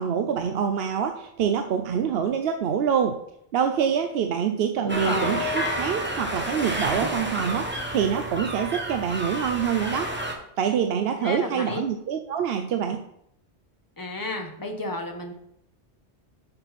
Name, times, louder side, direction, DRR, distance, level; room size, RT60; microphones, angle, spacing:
voice 1, 0.0-3.2 3.5-10.1 10.6-13.0, right 7 dB, 65° right, 6 dB, 0.7 m, -25 dB
voice 2, 4.8-5.5 11.2-11.8 14.0-15.3, left 2 dB, 20° left, 3 dB, 0.9 m, -32 dB
sound 1, 4.9-10.3, equal, 10° right, 0.9 m, -30 dB
6.7 x 6.0 x 4.2 m, 0.75 s
omnidirectional pair, 1.2 m